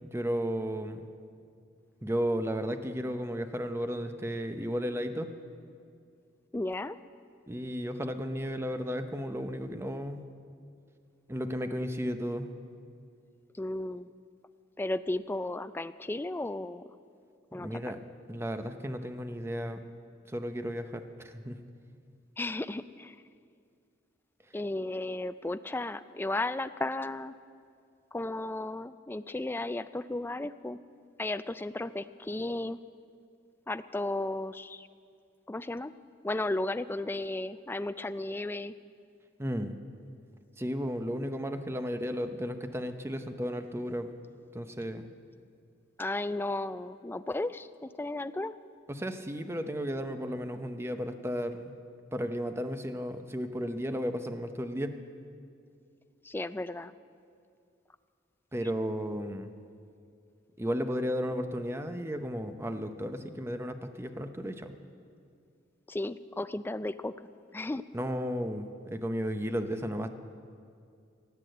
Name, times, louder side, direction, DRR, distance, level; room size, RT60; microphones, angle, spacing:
voice 1, 0.0-1.1 2.0-5.3 7.5-10.3 11.3-12.5 17.6-18.0 18.3-19.8 20.3-21.6 39.4-39.7 40.6-44.1 44.5-45.1 48.9-51.7 52.1-55.0 58.5-59.5 60.6-64.7 67.9-70.1, equal, 15° right, 8 dB, 0.7 m, -34 dB
voice 2, 6.5-7.0 13.6-14.1 14.8-16.8 17.5-17.8 22.4-23.2 24.5-27.3 28.1-30.8 31.2-32.8 33.7-34.9 35.5-35.9 36.2-38.7 46.0-48.5 56.2-56.9 65.9-67.1 67.5-67.8, left 2 dB, 10° left, 13 dB, 0.3 m, -34 dB
17.5 x 8.3 x 7.8 m, 2.3 s
head